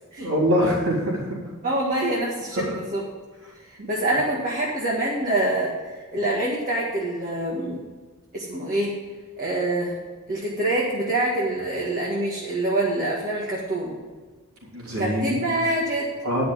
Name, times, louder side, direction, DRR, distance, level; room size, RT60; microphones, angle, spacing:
voice 1, 0.2-1.2 2.6-2.7 14.7-15.4 16.2-16.4, equal, 75° right, -4 dB, 4.0 m, -23 dB
voice 2, 1.6-3.0 3.7-7.8 8.3-8.9 9.4-10.0 10.3-14.0 15.0-16.1, right 1 dB, 40° right, -5 dB, 1.9 m, -25 dB
11.0 x 6.1 x 7.7 m, 1.4 s
head